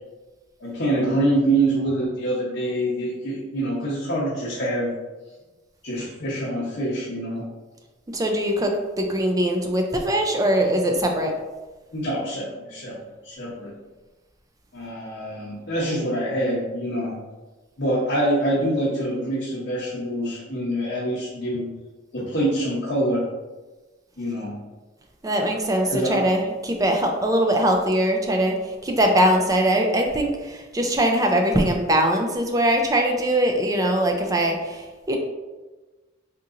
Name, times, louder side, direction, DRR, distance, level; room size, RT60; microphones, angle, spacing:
voice 1, 0.6-4.9 5.8-7.5 11.9-13.0 13.2-13.7 14.7-17.2 17.8-21.7 22.1-23.2 24.2-24.6 25.9-26.2, right 1 dB, 55° left, -8 dB, 0.8 m, -25 dB
voice 2, 8.1-11.3 25.2-28.5 28.8-35.2, right 1 dB, 15° right, 2 dB, 0.3 m, -21 dB
3.7 x 2.9 x 2.5 m, 1.2 s
head